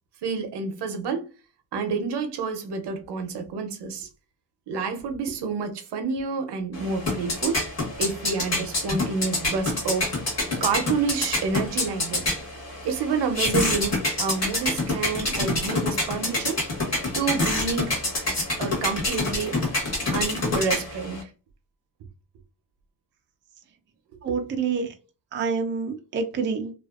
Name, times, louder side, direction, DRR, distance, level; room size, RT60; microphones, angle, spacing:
voice 1, 0.2-1.3 1.7-4.1 4.7-7.6 8.0-10.1 10.6-12.2 12.8-16.6 17.1-18.0 18.6-19.6 20.1-21.3 24.1-24.7, right 4 dB, 80° right, 0.7 m, -29 dB
sound 1, 6.7-21.2, left 2 dB, 40° left, 1.3 m, -27 dB
voice 2, 24.2-24.9 25.3-26.7, right 5 dB, 30° right, 0.4 m, -27 dB
2.5 x 2.3 x 2.3 m
wide cardioid pair, 145°, 40 cm